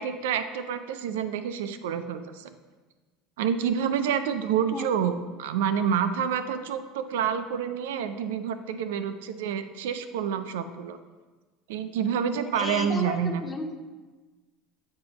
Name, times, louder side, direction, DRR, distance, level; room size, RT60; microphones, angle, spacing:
voice 1, 0.0-2.5 3.4-11.0 11.7-13.4, right 8 dB, 90° right, 10 dB, 0.4 m, -28 dB
voice 2, 12.5-13.8, left 3 dB, 20° left, 5 dB, 0.7 m, -34 dB
7.5 x 2.9 x 5.1 m, 1.3 s
supercardioid pair, 110°, 0 cm